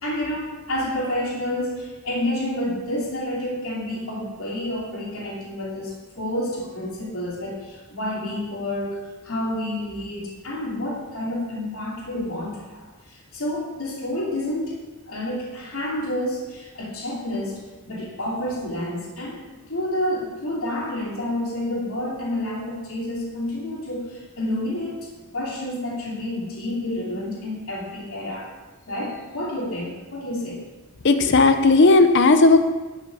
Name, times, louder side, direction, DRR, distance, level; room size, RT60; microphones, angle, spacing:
voice 1, 0.0-14.7 15.1-28.5 28.9-30.6, left 1 dB, 70° left, -3 dB, 2.8 m, -29 dB
voice 2, 31.0-32.7, left 3 dB, 50° left, 8 dB, 0.6 m, -15 dB
11.5 x 6.8 x 6.2 m, 1.2 s
head